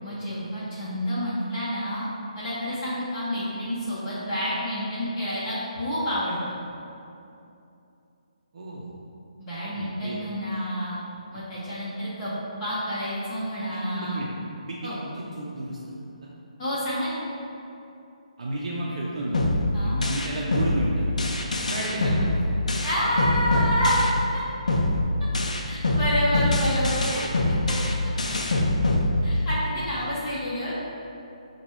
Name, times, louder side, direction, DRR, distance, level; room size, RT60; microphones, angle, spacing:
voice 1, 0.0-2.1 2.3-6.4 9.4-11.0 11.3-12.3 12.6-14.2 14.8-15.0 16.6-17.2 19.7-20.0 22.8-24.1 24.3-24.4 25.6-27.2 29.2-30.7, equal, 25° left, -11 dB, 0.9 m, -29 dB
voice 2, 8.5-8.9 9.7-10.2 11.3-11.4 11.7-11.8 13.7-14.3 14.6-16.3 18.4-19.4 19.8-21.3 21.6-22.6 23.5-23.6 29.3-29.5 29.7-29.8, right 1 dB, 60° right, -4 dB, 0.5 m, -33 dB
sound 1, 19.3-24.4 24.7-29.7, left 1 dB, 75° left, 0.5 m, -24 dB
5.8 x 2.2 x 3.1 m, 2.8 s
figure-of-eight pair, 145°, 4 cm